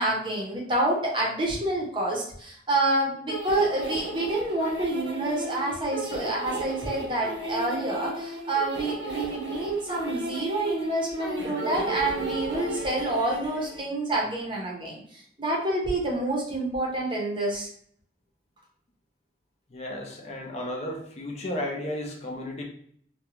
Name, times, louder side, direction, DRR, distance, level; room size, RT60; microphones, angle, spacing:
voice 1, 0.0-17.7, right 2 dB, 25° right, -2 dB, 0.7 m, -28 dB
sound 1, 3.3-13.8, right 2 dB, 90° right, 0.8 m, -35 dB
voice 2, 19.7-22.6, left 1 dB, 35° left, 0 dB, 0.4 m, -33 dB
2.4 x 2.2 x 2.9 m, 0.62 s
head